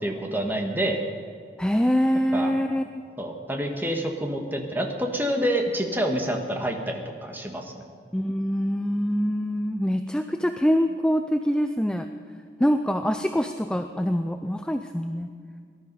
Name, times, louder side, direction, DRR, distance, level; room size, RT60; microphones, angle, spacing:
voice 1, 0.0-1.0 2.3-2.5 3.2-7.9, right 1 dB, 10° right, 3 dB, 1.4 m, -27 dB
voice 2, 1.6-2.8 8.1-12.1 12.6-15.3, equal, 5° left, 7 dB, 0.4 m, -24 dB
18.0 x 12.0 x 5.4 m, 2.2 s
head